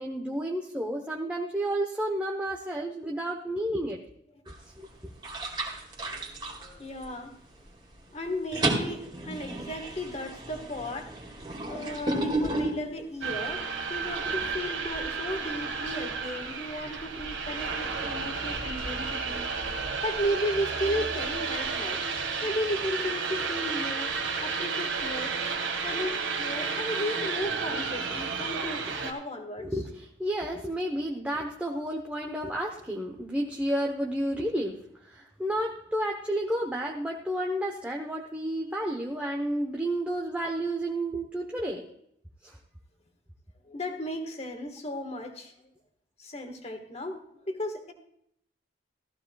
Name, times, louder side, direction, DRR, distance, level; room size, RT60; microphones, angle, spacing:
voice 1, 0.0-4.0 4.5-5.1 29.6-41.9 42.4-42.6, right 1 dB, 10° right, -1 dB, 0.9 m, -31 dB
sound 1, 4.5-4.8 5.2-7.3 7.7-8.0 8.3-13.5, right 2 dB, 25° right, 2.1 m, -33 dB
voice 2, 6.0-7.4 8.1-11.3 11.7-19.5 20.0-22.0 22.4-25.3 25.8-29.9 43.6-45.5 46.2-47.9, equal, 35° left, 5 dB, 1.5 m, -35 dB
sound 2, 13.2-29.1, right 5 dB, 85° right, 1.7 m, -32 dB
15.0 x 14.5 x 2.3 m, 0.72 s
head